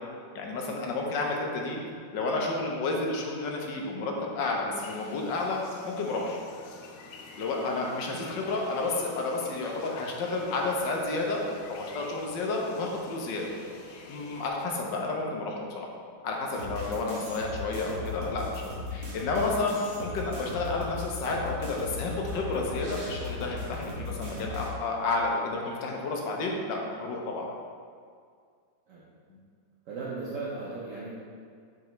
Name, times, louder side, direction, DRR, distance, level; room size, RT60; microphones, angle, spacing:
voice 1, 0.3-1.8 2.1-6.4 7.4-11.4 11.7-13.5 14.1-15.9 16.2-27.5 29.3-29.4, left 3 dB, 70° left, 0 dB, 1.5 m, -31 dB
sound 1, 4.8-14.5, left 3 dB, 85° left, 1.5 m, -48 dB
sound 2, 10.2-17.4, left 1 dB, 50° left, 1.7 m, -52 dB
sound 3, 16.5-24.7, left 3 dB, 75° right, 2.0 m, -37 dB
voice 2, 29.9-31.1, right 3 dB, 60° right, -6 dB, 0.9 m, -37 dB
7.0 x 5.4 x 3.1 m, 2.2 s
omnidirectional pair, 2.2 m